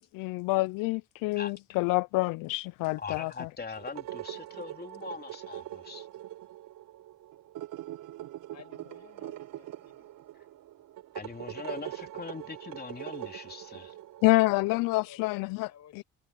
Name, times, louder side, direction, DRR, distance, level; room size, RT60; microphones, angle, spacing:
voice 1, 0.1-3.5 14.2-16.0, left 22 dB, 85° left, 0.5 m, -27 dB
voice 2, 3.0-6.1 11.2-14.0, left 4 dB, 30° left, 3.6 m, -41 dB
sound 1, 3.8-14.5, right 13 dB, 75° right, 5.4 m, -43 dB
voice 3, 8.5-10.2 14.5-16.0, left 9 dB, 55° left, 6.7 m, -54 dB
cardioid pair, 85°, 32 cm